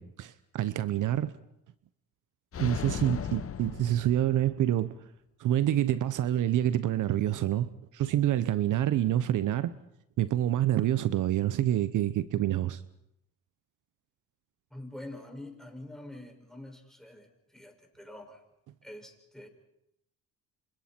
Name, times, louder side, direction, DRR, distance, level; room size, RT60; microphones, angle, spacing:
voice 1, 0.0-1.3 2.6-5.0 5.4-9.7 10.2-12.8, right 12 dB, 60° right, 14 dB, 0.9 m, -27 dB
sound 1, 2.5-4.7, left 8 dB, 40° left, 1.3 m, -37 dB
voice 2, 14.7-18.4 18.8-19.5, left 1 dB, ahead, 3 dB, 6.3 m, -46 dB
30.0 x 26.5 x 4.5 m, 0.81 s
supercardioid pair, 80°, 34 cm